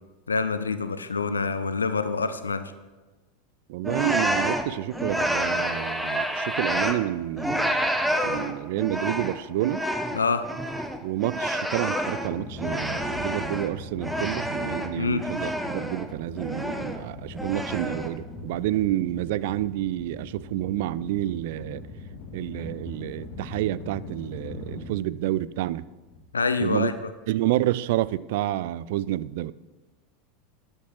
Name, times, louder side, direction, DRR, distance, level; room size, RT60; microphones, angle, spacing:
voice 1, 0.3-2.7 10.1-10.5 15.0-15.3 26.3-26.9, left 4 dB, 80° left, 0.5 m, -26 dB
voice 2, 3.7-7.9 8.2-9.8 11.0-21.8 22.3-25.8 26.6-26.9 27.3-29.5, right 15 dB, 60° right, 0.3 m, -29 dB
sound 1, 3.8-7.1 7.4-13.7 14.0-16.1 16.4-17.0 17.4-18.2, equal, ahead, 0.8 m, -28 dB
sound 2, 12.2-26.8, left 2 dB, 55° left, 2.2 m, -41 dB
11.0 x 5.4 x 6.1 m
figure-of-eight pair, 85°, 0 cm